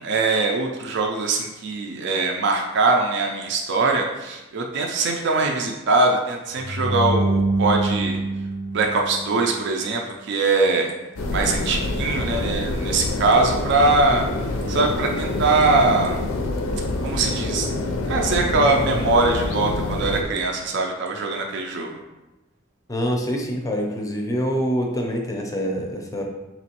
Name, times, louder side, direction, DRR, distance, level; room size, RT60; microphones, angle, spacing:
voice 1, 0.0-8.2 8.7-10.9 11.3-14.2 14.7-16.2 17.0-17.7 18.1-21.9, right 3 dB, 60° right, 1 dB, 0.4 m, -22 dB
sound 1, 6.5-9.7, right 2 dB, 80° right, 0.8 m, -25 dB
sound 2, 11.2-20.2, left 2 dB, 85° left, 0.5 m, -26 dB
voice 2, 22.9-26.2, equal, 15° left, 1 dB, 0.5 m, -25 dB
4.3 x 2.9 x 2.9 m, 1.0 s
head